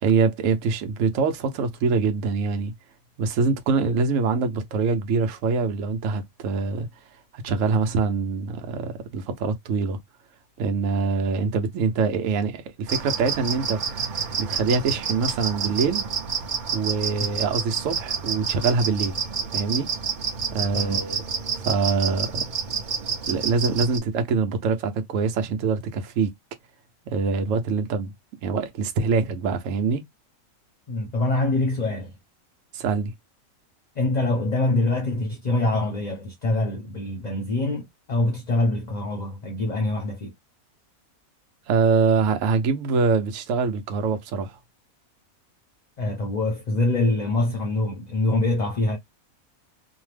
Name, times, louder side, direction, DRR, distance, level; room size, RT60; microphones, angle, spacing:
voice 1, 0.0-2.7 3.2-6.9 7.3-10.0 10.6-14.1 14.4-16.1 16.7-19.2 19.5-19.9 20.5-21.2 21.6-22.5 23.3-26.3 27.1-28.1 28.4-30.0 32.7-33.1 41.7-44.6, right 4 dB, 70° right, 1.0 m, -24 dB
sound 1, 12.9-24.0, right 6 dB, 50° right, 0.5 m, -29 dB
voice 2, 20.7-21.0 30.9-32.1 34.0-40.3 46.0-49.0, left 2 dB, 40° left, 0.6 m, -24 dB
2.7 x 2.1 x 3.2 m
omnidirectional pair, 1.5 m